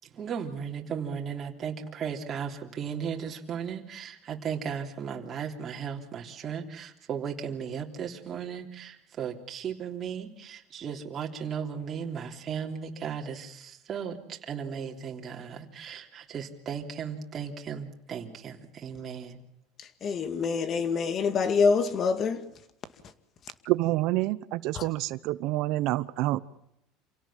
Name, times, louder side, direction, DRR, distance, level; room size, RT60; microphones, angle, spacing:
voice 1, 0.0-19.4, right 7 dB, 30° right, 3.3 m, -36 dB
voice 2, 20.0-22.5 24.7-24.8, left 5 dB, 35° left, 2.0 m, -25 dB
voice 3, 23.7-26.4, right 17 dB, 60° right, 0.8 m, -27 dB
28.0 x 17.5 x 7.5 m
supercardioid pair, 130°, 0 cm